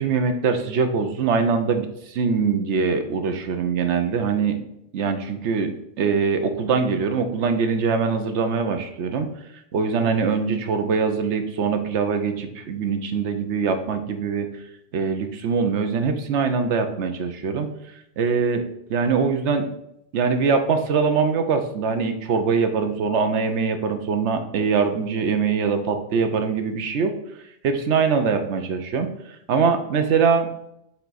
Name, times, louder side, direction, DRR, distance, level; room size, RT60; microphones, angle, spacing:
voice 1, 0.0-4.6 4.9-9.3 9.7-14.5 14.9-17.7 18.2-18.6 18.9-19.7 20.1-27.1 27.6-29.1 29.5-30.5, right 5 dB, 90° right, 7 dB, 1.0 m, -23 dB
7.4 x 3.5 x 4.0 m, 0.79 s
omnidirectional pair, 1.1 m